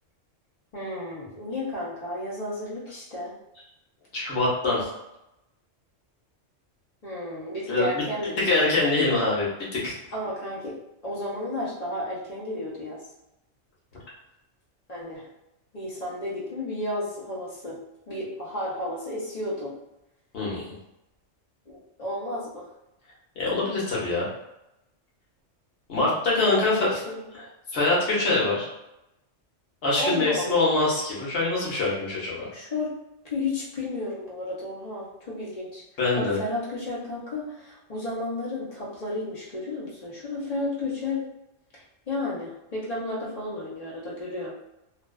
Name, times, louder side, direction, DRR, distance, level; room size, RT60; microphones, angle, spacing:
voice 1, 0.7-3.3 7.0-8.5 10.1-10.8 11.0-13.0 14.9-15.3 15.7-17.8 18.1-19.7 21.7-22.7 26.5-27.3 30.0-30.7 32.5-32.9 33.3-35.8 36.1-41.2 41.7-44.5, left 1 dB, 45° left, -6 dB, 0.6 m, -32 dB
voice 2, 4.1-4.9 7.7-8.0 8.4-9.9 20.3-20.7 23.4-24.3 25.9-26.9 27.7-28.7 29.8-32.5 36.0-36.4, left 2 dB, 60° left, -6 dB, 1.0 m, -24 dB
2.5 x 2.2 x 2.2 m, 0.89 s
omnidirectional pair, 1.3 m